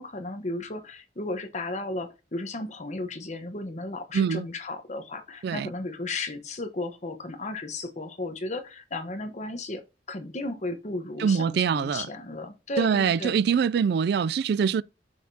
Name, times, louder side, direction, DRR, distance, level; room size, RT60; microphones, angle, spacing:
voice 1, 0.0-9.8 10.1-13.3, left 2 dB, 40° left, 1.1 m, -34 dB
voice 2, 4.1-4.5 5.4-5.7 11.2-12.1 12.8-14.8, right 6 dB, 65° right, 0.3 m, -24 dB
7.0 x 6.5 x 2.8 m
head